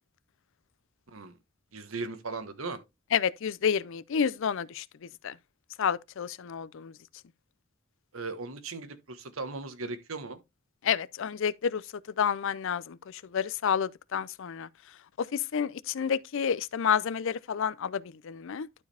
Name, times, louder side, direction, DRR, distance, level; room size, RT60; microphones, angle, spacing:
voice 1, 1.7-2.8 8.1-10.4, right 3 dB, 75° right, 1.3 m, -37 dB
voice 2, 3.1-4.8 5.2-5.3 5.8-6.9 10.8-11.8 12.2-14.7 15.2-18.7, left 7 dB, 65° left, 0.4 m, -29 dB
11.5 x 4.9 x 3.3 m
head